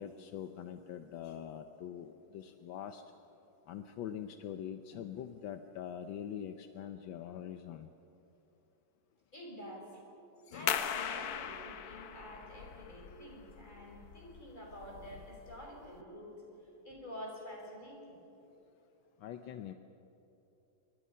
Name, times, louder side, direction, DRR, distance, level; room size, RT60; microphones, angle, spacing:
voice 1, 0.0-3.0 3.7-7.9 10.5-10.7 19.2-19.7, left 9 dB, 75° left, 8 dB, 1.6 m, -43 dB
voice 2, 9.3-10.0 10.5-16.4 16.6-18.2, equal, 20° left, -1 dB, 5.8 m, -48 dB
sound 1, 10.7-16.0, left 8 dB, 60° left, 1.2 m, -40 dB
28.0 x 23.0 x 5.6 m, 3.0 s
omnidirectional pair, 2.1 m